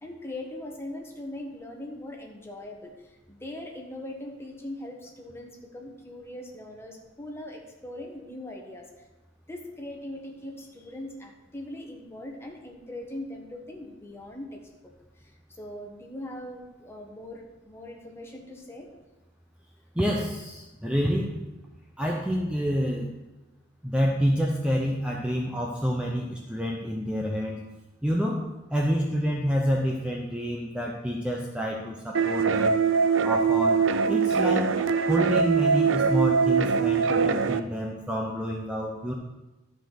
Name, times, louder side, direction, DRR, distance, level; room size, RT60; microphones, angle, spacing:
voice 1, 0.0-8.9 9.5-18.9, left 1 dB, 15° left, 1 dB, 1.4 m, -40 dB
voice 2, 19.9-21.5 22.0-23.1 23.8-27.6 28.0-28.4 28.7-32.8 33.2-34.7 35.1-39.1, equal, 5° right, -2 dB, 0.8 m, -28 dB
sound 1, 32.1-37.6, right 5 dB, 85° right, 0.5 m, -23 dB
11.5 x 5.3 x 5.9 m, 1.1 s
head